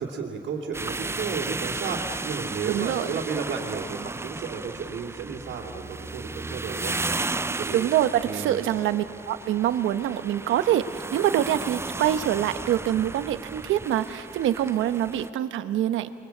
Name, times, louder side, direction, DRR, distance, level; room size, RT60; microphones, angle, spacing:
voice 1, 0.0-7.0 7.6-7.9 8.2-8.6, right 5 dB, 65° right, -5 dB, 3.1 m, -33 dB
sound 1, 0.7-15.3, right 3 dB, 15° right, 0.5 m, -34 dB
voice 2, 2.7-3.1 7.7-16.1, right 11 dB, 85° right, 10 dB, 1.1 m, -25 dB
28.0 x 22.5 x 8.5 m, 2.7 s
cardioid pair, 90°, 20 cm